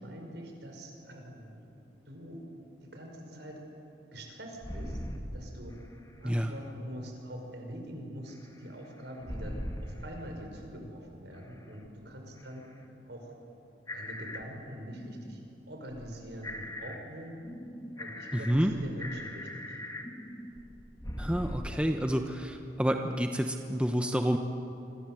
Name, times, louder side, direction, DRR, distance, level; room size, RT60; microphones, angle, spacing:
voice 1, 0.0-1.7 2.1-2.4 2.8-3.6 4.1-5.0 5.3-5.8 6.2-12.7 13.0-13.3 13.9-15.4 15.7-17.4 18.0-19.8, equal, 70° right, 2 dB, 5.5 m, -44 dB
sound 1, 4.6-5.2 5.7-5.8 8.3-8.4 9.2-9.9 11.3-11.4 11.9-12.0 12.4-12.5 13.9-14.4 14.9-15.4 15.9-17.0 17.4-21.6, left 1 dB, 20° left, 2.2 m, -40 dB
voice 2, 18.3-18.7 21.2-24.4, equal, 5° right, 4 dB, 1.0 m, -29 dB
28.0 x 26.0 x 7.9 m, 2.8 s
head